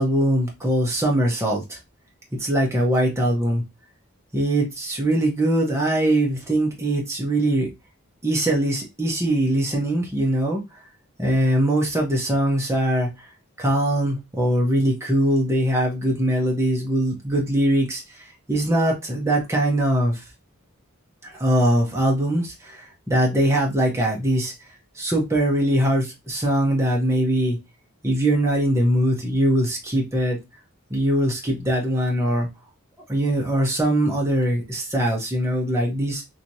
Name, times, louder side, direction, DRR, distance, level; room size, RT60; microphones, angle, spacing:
voice 1, 0.0-1.8 2.4-3.6 4.3-7.7 8.2-10.6 11.2-13.3 13.6-20.2 21.2-24.5 24.9-27.6 28.0-30.4 30.9-32.5 33.1-36.2, right 1 dB, 10° right, 0.9 m, -22 dB
3.1 x 2.9 x 2.6 m
head